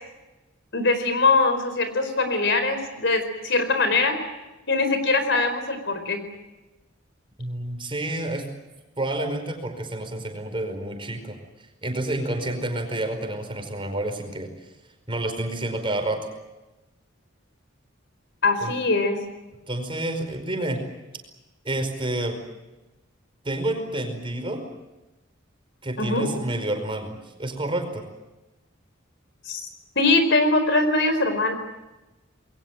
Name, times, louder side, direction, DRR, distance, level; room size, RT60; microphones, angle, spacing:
voice 1, 0.7-4.2 4.7-6.2 18.4-19.2 26.0-26.3 29.5-29.7 29.9-31.6, left 3 dB, 65° left, 9 dB, 4.6 m, -22 dB
voice 2, 7.4-8.4 9.0-11.4 11.8-14.5 15.1-16.2 18.6-18.7 19.7-20.8 21.6-22.4 23.4-24.6 25.8-28.0, right 1 dB, 25° right, 5 dB, 4.9 m, -29 dB
28.0 x 22.0 x 7.7 m, 1.0 s
head